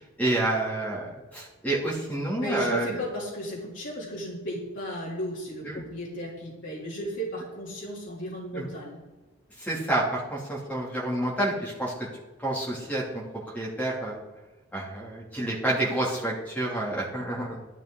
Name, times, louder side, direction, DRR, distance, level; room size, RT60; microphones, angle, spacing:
voice 1, 0.0-3.0 5.6-5.8 8.5-8.7 9.6-12.1 12.4-13.2 13.5-14.2 14.7-17.6, right 1 dB, 10° left, -5 dB, 2.9 m, -29 dB
voice 2, 2.4-9.0, equal, 65° left, -6 dB, 3.3 m, -34 dB
12.5 x 12.0 x 3.9 m, 1.2 s
head